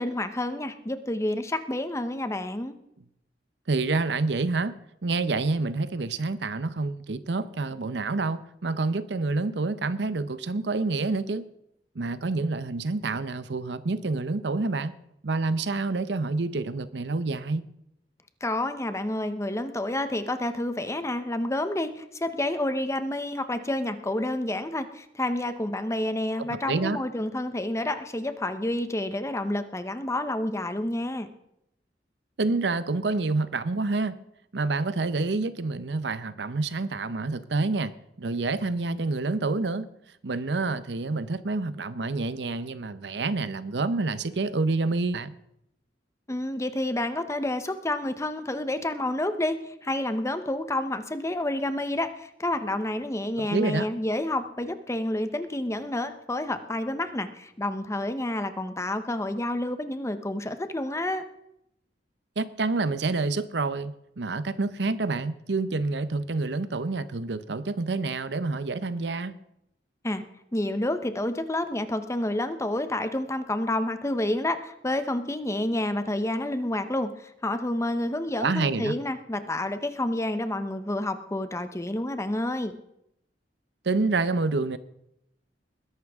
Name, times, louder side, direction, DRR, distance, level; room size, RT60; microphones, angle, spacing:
voice 1, 0.0-2.8 18.4-31.3 46.3-61.2 70.0-70.2 70.5-82.8, left 1 dB, 15° left, 0.9 m, -29 dB
voice 2, 3.7-4.8 5.0-11.5 11.9-14.9 15.2-17.7 26.7-27.0 32.4-34.2 34.5-37.9 38.2-39.9 40.2-45.4 53.4-53.9 62.4-69.4 78.4-78.9 83.8-84.8, right 3 dB, 75° right, 0.7 m, -28 dB
20.5 x 11.5 x 3.6 m
head